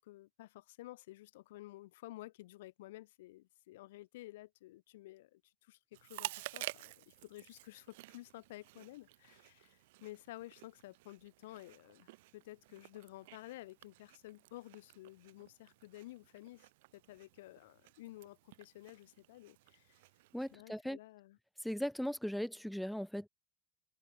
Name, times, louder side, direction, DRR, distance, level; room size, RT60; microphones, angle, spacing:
voice 1, 0.0-20.0 20.5-21.4, left 17 dB, 70° left, 0.4 m, -53 dB
Chewing mastication, 5.9-20.6, right 20 dB, 70° right, 0.8 m, -51 dB
voice 2, 20.3-21.0 21.6-23.3, equal, ahead, 0.5 m, -38 dB
open air
figure-of-eight pair, 65°, 0 cm